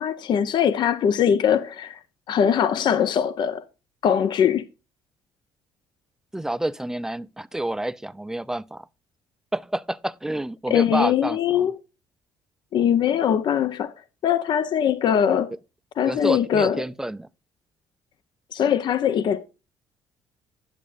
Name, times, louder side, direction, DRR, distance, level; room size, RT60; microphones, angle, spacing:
voice 1, 0.0-2.0 2.3-3.7 4.0-4.6 10.7-11.8 12.7-13.9 14.2-15.5 16.0-16.8 18.5-19.5, left 8 dB, 55° left, 0.7 m, -21 dB
voice 2, 6.3-8.9 9.5-11.7 16.0-17.3, right 1 dB, 5° right, 0.4 m, -29 dB
10.5 x 7.4 x 2.5 m
cardioid pair, 85°, 9 cm